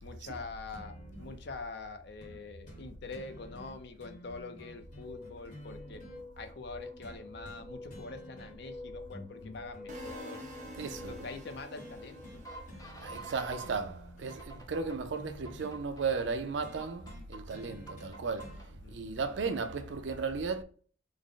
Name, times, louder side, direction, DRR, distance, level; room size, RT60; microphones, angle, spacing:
voice 1, 0.0-6.0 6.4-10.4 11.1-12.4 18.8-19.1, left 3 dB, 60° left, 0.5 m, -45 dB
sound 1, 0.7-1.3 2.2-2.4 2.7-2.8 3.1-6.2 7.0-7.6 7.9-8.7 9.1-11.0 11.8-12.0 12.2-12.4 12.7-13.3 13.6-15.8 16.6-18.6 19.6-19.7, left 1 dB, 40° left, 1.0 m, -51 dB
sound 2, 4.8-13.8 14.3-15.0 15.4-16.3 16.8-17.4 17.9-18.7, equal, 20° left, 0.7 m, -48 dB
sound 3, 9.9-13.9, equal, 40° right, 0.8 m, -48 dB
voice 2, 10.8-11.1 13.0-20.6, right 4 dB, 65° right, 0.5 m, -35 dB
3.5 x 2.0 x 3.7 m
head